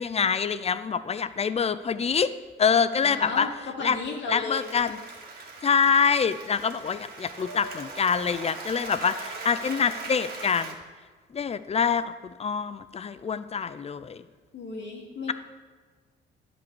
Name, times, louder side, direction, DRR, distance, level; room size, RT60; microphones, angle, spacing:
voice 1, 0.0-2.3 2.6-3.5 3.8-4.0 4.3-5.0 5.6-10.8 11.3-14.2, left 6 dB, 30° left, 13 dB, 0.6 m, -25 dB
voice 2, 3.0-3.5 3.8-4.7 14.5-15.3, left 3 dB, 65° left, 0 dB, 2.6 m, -34 dB
Applause, 4.5-10.7, right 3 dB, 50° right, 2.4 m, -40 dB
11.5 x 5.4 x 8.3 m, 1.4 s
cardioid pair, 90°, 20 cm